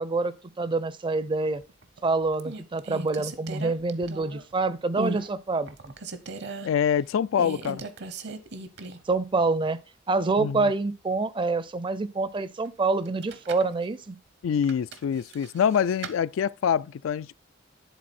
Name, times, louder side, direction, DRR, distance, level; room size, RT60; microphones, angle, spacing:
voice 1, 0.0-1.6 2.0-5.9 9.1-9.8 10.1-14.2, right 3 dB, 25° right, 0.5 m, -26 dB
sound 1, 1.6-2.0 2.4-4.5 5.0-5.3 5.7-6.7 7.4-9.2 9.5-9.6 13.1-13.7 14.6-16.2, right 2 dB, 60° right, 0.8 m, -37 dB
voice 2, 6.6-7.8 10.4-10.7 14.4-17.4, left 8 dB, 85° left, 0.3 m, -25 dB
10.5 x 4.0 x 4.2 m
head